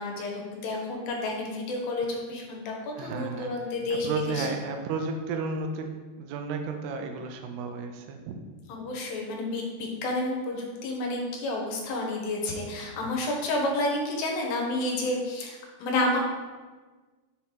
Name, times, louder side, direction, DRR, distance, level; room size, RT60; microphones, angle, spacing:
voice 1, 0.0-4.5 8.8-16.2, left 2 dB, 80° left, 0 dB, 3.1 m, -30 dB
voice 2, 3.0-3.5 3.9-5.9 6.2-8.3 13.0-13.1, right 4 dB, 85° right, 4 dB, 2.7 m, -32 dB
7.2 x 4.3 x 3.8 m, 1.4 s
omnidirectional pair, 4.7 m